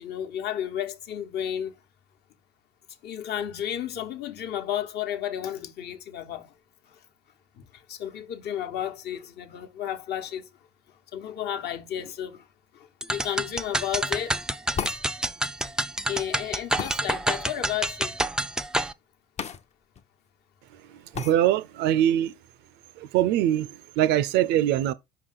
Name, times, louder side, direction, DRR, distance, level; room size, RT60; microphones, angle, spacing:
voice 1, 0.0-1.7 3.0-6.5 6.9-7.0 7.5-10.5 10.9-12.5 12.7-14.4 16.1-18.2, left 10 dB, 50° left, 1.1 m, -33 dB
sound 1, 13.0-18.9, right 1 dB, 5° right, 0.4 m, -28 dB
sound 2, 14.8-15.1 16.8-17.0 19.4-19.6 20.0-20.1 21.1-21.4, left 7 dB, 30° left, 0.7 m, -32 dB
voice 2, 21.1-22.3 23.0-23.7 24.0-24.9, right 12 dB, 55° right, 0.5 m, -22 dB
5.6 x 4.9 x 3.9 m
hypercardioid pair, 70°, 21 cm